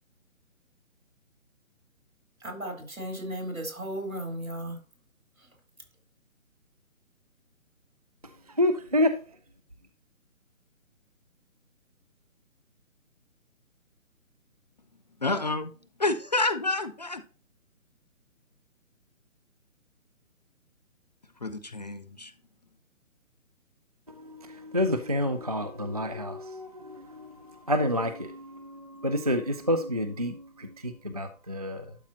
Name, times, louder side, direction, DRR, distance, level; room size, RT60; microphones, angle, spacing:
voice 1, 2.4-4.8 5.4-5.5, right 1 dB, 80° right, 3.8 m, -35 dB
voice 2, 8.2-9.2 24.1-32.0, left 1 dB, 30° right, 0.4 m, -29 dB
voice 3, 15.2-15.7 16.0-17.2 21.4-22.3, left 2 dB, 30° left, 0.5 m, -28 dB
11.5 x 5.3 x 2.8 m
figure-of-eight pair, 145°, 41 cm